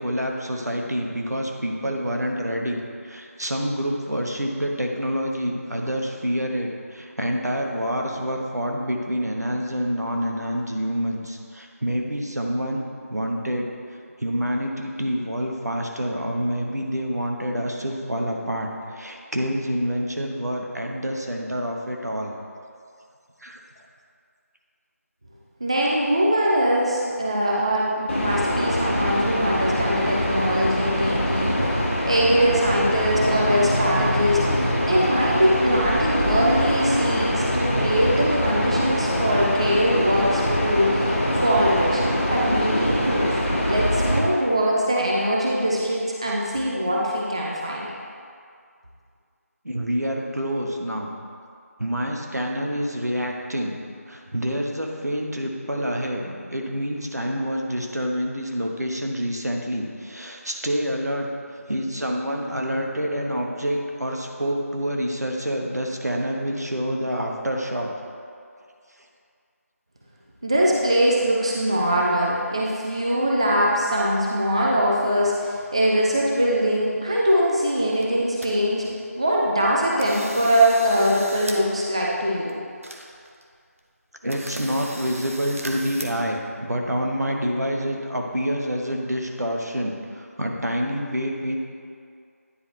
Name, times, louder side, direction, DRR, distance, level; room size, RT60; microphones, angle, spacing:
voice 1, 0.0-13.7 14.2-22.3 23.4-23.6 49.6-51.1 51.8-53.8 54.1-61.3 61.6-67.9 84.2-91.6, equal, 85° right, 1 dB, 1.1 m, -27 dB
voice 2, 25.6-31.6 32.1-42.0 42.3-43.4 43.7-47.9 70.4-78.9 79.2-82.5, equal, 20° right, -4 dB, 0.4 m, -22 dB
sound 1, 28.1-44.2, equal, 45° left, 1.5 m, -24 dB
sound 2, 77.7-77.8 78.0-78.5 78.9-79.0 79.5-79.7 80.0-81.6 81.9-82.0 82.5-82.6 82.8-83.4 83.8-83.9 84.3-86.0, right 1 dB, 60° right, 0.8 m, -37 dB
9.7 x 4.4 x 3.2 m, 2.3 s
figure-of-eight pair, 170°, 9 cm